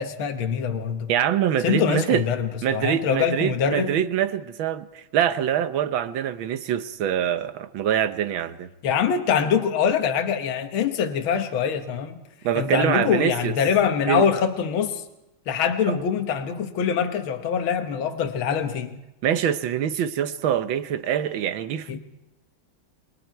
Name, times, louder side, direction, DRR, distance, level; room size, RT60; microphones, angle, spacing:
voice 1, 0.0-1.1 1.6-4.0 8.8-12.2 12.5-15.0 15.5-19.0 21.9-22.0, left 7 dB, 75° left, 1.9 m, -24 dB
voice 2, 1.1-2.2 2.6-8.7 12.4-13.5 14.1-14.2 19.2-22.0, right 9 dB, 75° right, 1.7 m, -24 dB
29.0 x 21.5 x 4.6 m
omnidirectional pair, 2.2 m